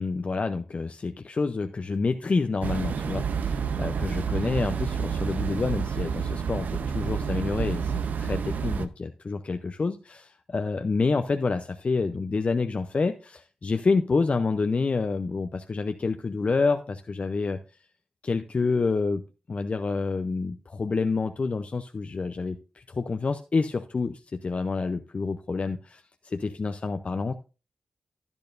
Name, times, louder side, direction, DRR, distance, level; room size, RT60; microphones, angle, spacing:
voice 1, 0.0-17.6 18.2-19.2 19.5-22.6 22.9-27.3, left 4 dB, 50° left, 7 dB, 0.6 m, -28 dB
sound 1, 2.6-8.9, right 6 dB, 85° right, 0.6 m, -29 dB
10.5 x 10.0 x 2.5 m, 0.32 s
cardioid pair, 45°, 3 cm